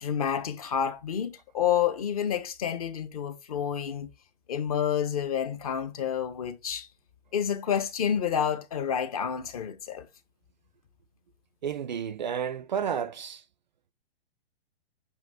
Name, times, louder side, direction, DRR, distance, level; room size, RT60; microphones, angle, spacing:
voice 1, 0.0-4.1 4.5-6.9 7.3-10.1, left 8 dB, 35° left, 0.8 m, -29 dB
voice 2, 11.6-13.4, right 8 dB, 45° right, 0.4 m, -31 dB
7.9 x 2.7 x 4.4 m
hypercardioid pair, 170°, 33 cm